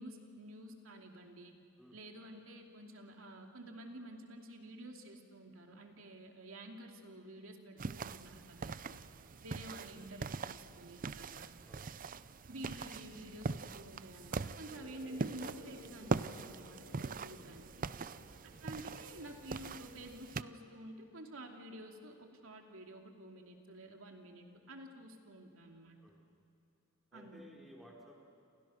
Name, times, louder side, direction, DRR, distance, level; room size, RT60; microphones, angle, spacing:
voice 1, 0.0-1.5 1.9-9.0 9.4-11.5 12.5-17.7 18.6-26.0 27.1-27.4, right 1 dB, 70° right, 3 dB, 2.8 m, -50 dB
sound 1, 7.8-20.4, right 4 dB, 40° right, 0.5 m, -42 dB
sound 2, 14.7-21.8, left 1 dB, 40° left, 5.8 m, -58 dB
voice 2, 17.9-18.6 26.0-26.2 27.1-28.2, equal, ahead, -2 dB, 4.1 m, -57 dB
29.5 x 28.0 x 6.5 m, 2.5 s
head